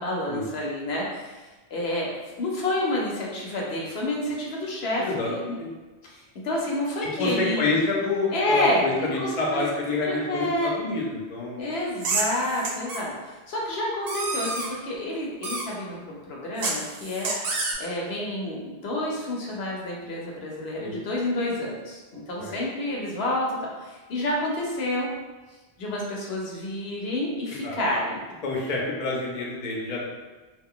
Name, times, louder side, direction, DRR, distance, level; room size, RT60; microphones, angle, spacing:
voice 1, 0.0-1.4 1.7-2.1 2.4-5.4 6.1-7.7 8.3-8.8 9.2-9.7 10.0-10.7 11.6-17.3 17.8-23.5 23.8-25.1 25.8-28.2, left 1 dB, 70° left, -3 dB, 0.8 m, -29 dB
voice 2, 5.0-5.7 7.0-11.6 20.8-21.0 22.4-22.6 27.6-27.8 28.4-30.1, left 3 dB, 45° left, -3 dB, 0.6 m, -28 dB
sound 1, 12.0-13.0 14.1-14.7 15.4-15.6 16.6-17.7, right 3 dB, 65° right, 0.8 m, -29 dB
2.5 x 2.2 x 3.7 m, 1.2 s
omnidirectional pair, 1.2 m